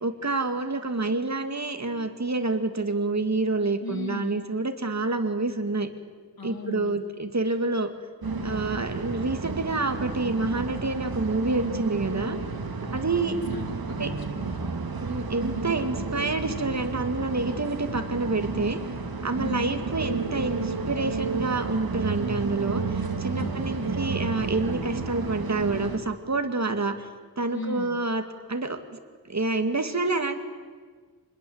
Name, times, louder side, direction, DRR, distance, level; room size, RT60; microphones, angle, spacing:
voice 1, 0.0-5.9 6.4-7.9 8.4-12.4 12.9-13.3 14.0-14.1 15.0-18.8 19.2-27.1 27.4-28.2 28.5-29.0 29.3-30.4, right 3 dB, 50° right, 7 dB, 2.1 m, -28 dB
voice 2, 3.8-4.5 6.4-7.0 12.8-14.7 19.4-19.8 23.3-23.9 27.5-28.0, left 3 dB, 75° left, 5 dB, 2.5 m, -38 dB
sound 1, 8.2-26.0, right 4 dB, 80° right, 2.2 m, -31 dB
27.0 x 20.5 x 7.9 m, 1.5 s
wide cardioid pair, 85°, 36 cm